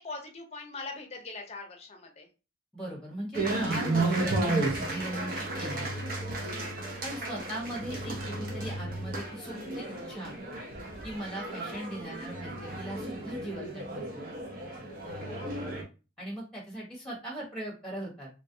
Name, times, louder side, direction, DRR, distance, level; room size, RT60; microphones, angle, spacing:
voice 1, 0.0-2.3 15.0-15.4, left 3 dB, 35° left, 3 dB, 0.7 m, -42 dB
voice 2, 2.7-5.9 7.0-10.3 11.0-14.2 16.2-18.3, right 1 dB, 5° left, -2 dB, 1.1 m, -39 dB
sound 1, 3.3-15.8, right 2 dB, 50° right, 0.7 m, -33 dB
3.0 x 2.4 x 2.7 m, 0.32 s
head